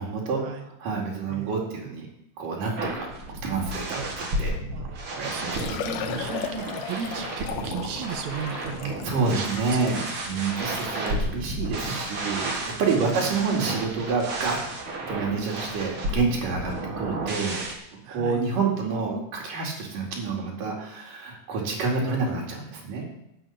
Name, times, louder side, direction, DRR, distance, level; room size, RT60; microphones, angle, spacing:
voice 1, 0.0-2.1 2.4-3.1 3.4-4.5 5.1-5.8 6.1-6.2 8.6-8.7 9.0-12.5 12.8-14.6 15.1-17.6 18.1-23.1, right 4 dB, 90° right, -2 dB, 4.1 m, -28 dB
sound 1, 2.8-17.7, right 1 dB, 45° right, 2.4 m, -32 dB
voice 2, 4.7-9.0 9.3-10.1 13.0-13.2 18.0-18.4, right 6 dB, 65° right, 7 dB, 2.2 m, -36 dB
Liquid, 4.9-5.0 5.3-11.2 11.9-12.0 12.5-12.6 14.2-14.3 14.5-14.6, left 8 dB, 85° left, 2.6 m, -37 dB
11.5 x 6.5 x 8.3 m, 0.84 s
omnidirectional pair, 3.7 m